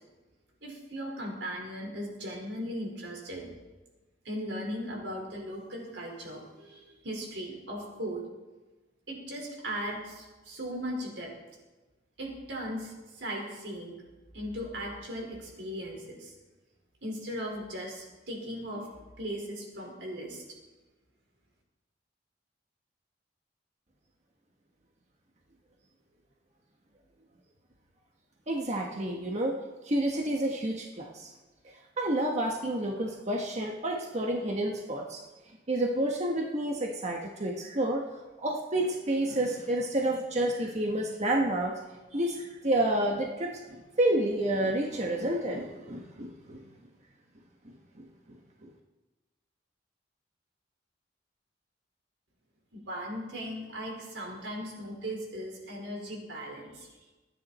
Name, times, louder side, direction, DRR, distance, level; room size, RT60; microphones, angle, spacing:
voice 1, 0.6-3.5 4.2-8.3 9.1-11.3 12.2-14.0 14.3-16.3 17.0-20.4 52.7-56.9, equal, 90° right, -1 dB, 4.8 m, -38 dB
voice 2, 28.5-29.6 29.8-31.3 31.6-35.2 35.7-38.0 38.4-41.8 42.1-46.6 48.0-48.1 48.6-48.7, right 1 dB, 40° right, 0 dB, 1.4 m, -29 dB
26.5 x 10.0 x 4.3 m, 1.1 s
head